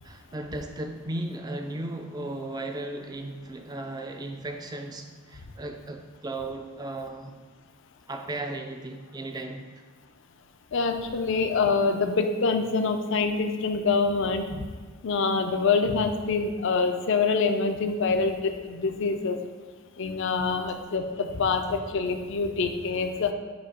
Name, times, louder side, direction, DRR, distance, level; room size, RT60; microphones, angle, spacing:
voice 1, 0.0-7.3 8.1-9.7, right 2 dB, 20° right, 0.3 m, -36 dB
voice 2, 10.7-14.7 15.0-19.4 20.0-23.3, left 4 dB, 60° left, 0.5 m, -25 dB
7.1 x 2.8 x 5.0 m
head